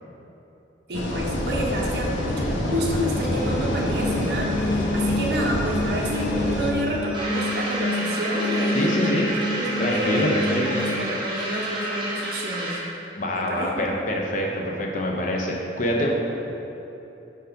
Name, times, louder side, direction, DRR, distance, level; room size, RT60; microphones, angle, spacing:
sound 1, 0.9-6.7, left 1 dB, 85° left, 0.7 m, -27 dB
voice 1, 0.9-12.8 13.5-13.9, equal, 60° right, -3 dB, 0.9 m, -29 dB
sound 2, 2.9-10.7, left 2 dB, 5° right, 0.7 m, -29 dB
sound 3, 7.1-12.9, right 1 dB, 25° right, 1.0 m, -30 dB
voice 2, 8.7-9.3 9.8-10.8 13.2-16.1, equal, 45° left, -1 dB, 0.7 m, -25 dB
5.0 x 4.5 x 5.2 m, 3.0 s
head